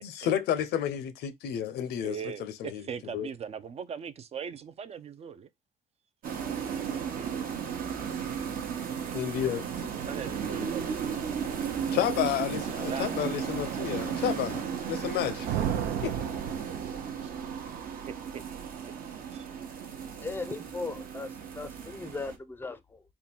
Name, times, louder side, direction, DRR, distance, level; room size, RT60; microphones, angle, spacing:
voice 1, 0.0-2.8 3.1-3.3 9.1-9.6 10.6-10.7 11.9-14.6 14.9-15.6 16.0-16.1, left 10 dB, 75° left, 0.6 m, -31 dB
voice 2, 2.0-5.5 6.5-7.5 9.0-9.4 10.0-11.0 11.6-12.0 12.5-12.6 12.9-13.1 13.9-14.1 17.1-17.3 19.3-19.5, right 7 dB, 40° right, 0.4 m, -40 dB
sound 1, 6.2-22.4, right 7 dB, 55° right, 0.9 m, -35 dB
sound 2, 15.4-17.4, right 9 dB, 85° right, 0.7 m, -33 dB
voice 3, 20.2-23.0, left 3 dB, 15° left, 0.5 m, -38 dB
3.7 x 2.3 x 4.2 m
cardioid pair, 110°, 17 cm